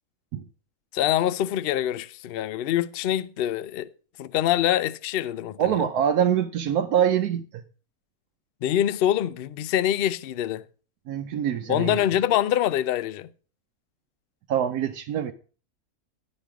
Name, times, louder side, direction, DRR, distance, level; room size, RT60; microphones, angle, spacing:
voice 1, 0.9-3.9 4.2-5.8 8.6-10.6 11.7-13.3, left 12 dB, 70° left, 0.5 m, -25 dB
voice 2, 5.6-7.6 11.1-12.0 14.5-15.3, right 9 dB, 85° right, 1.2 m, -24 dB
11.0 x 5.3 x 6.0 m
omnidirectional pair, 1.6 m